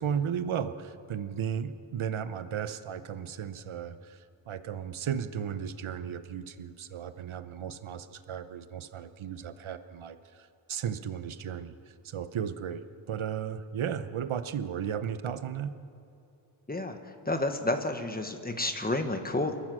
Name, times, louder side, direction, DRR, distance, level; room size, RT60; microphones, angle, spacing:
voice 1, 0.0-15.8, right 8 dB, 80° right, 11 dB, 1.0 m, -35 dB
voice 2, 17.2-19.5, left 2 dB, 20° left, 6 dB, 1.3 m, -30 dB
29.0 x 14.0 x 6.3 m, 2.7 s
wide cardioid pair, 180°, 48 cm